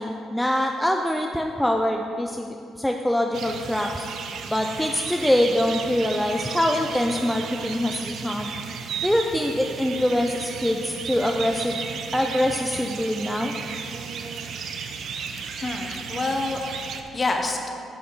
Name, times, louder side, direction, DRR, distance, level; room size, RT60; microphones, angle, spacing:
voice 1, 0.0-4.1 4.5-8.5 9.0-11.8 12.1-13.6, left 1 dB, 5° left, 2 dB, 0.4 m, -24 dB
sound 1, 3.3-17.0, right 6 dB, 70° right, 0.6 m, -34 dB
voice 2, 15.5-17.7, left 2 dB, 30° left, 3 dB, 1.0 m, -28 dB
10.5 x 5.7 x 4.0 m, 2.6 s
cardioid pair, 90°, 0 cm